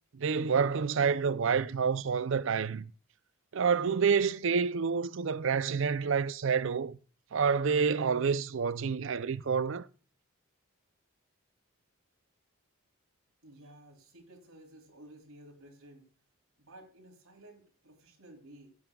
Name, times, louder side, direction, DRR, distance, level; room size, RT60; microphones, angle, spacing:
voice 1, 0.1-2.9 3.5-7.0 7.3-9.9, right 6 dB, 60° right, 0.5 m, -28 dB
voice 2, 13.4-16.1 16.6-18.8, right 1 dB, 85° right, 3.3 m, -54 dB
16.5 x 8.7 x 2.3 m
head